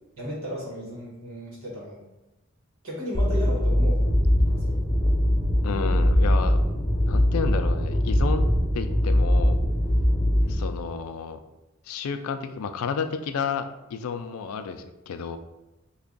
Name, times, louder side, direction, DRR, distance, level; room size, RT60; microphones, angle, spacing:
voice 1, 0.2-2.0 2.8-4.1 4.5-4.8 10.4-10.6, equal, 80° right, -4 dB, 1.3 m, -35 dB
sound 1, 3.1-10.5, equal, 20° left, 0.5 m, -22 dB
voice 2, 5.6-6.6 7.0-8.5 8.7-9.6 10.5-11.4 11.9-15.4, left 5 dB, 90° left, 8 dB, 0.3 m, -31 dB
3.3 x 2.3 x 3.8 m, 0.99 s
head